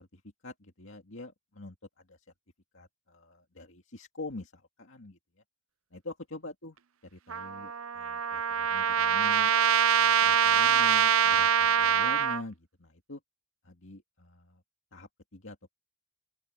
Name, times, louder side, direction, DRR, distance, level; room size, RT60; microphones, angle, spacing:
voice 1, 0.0-2.2 2.7-5.2 5.9-6.8 7.1-9.5 10.0-13.2 13.6-14.6 14.9-15.7, left 2 dB, 60° left, 2.4 m, -45 dB
Trumpet, 7.3-12.4, right 8 dB, 75° right, 0.7 m, -24 dB
open air
head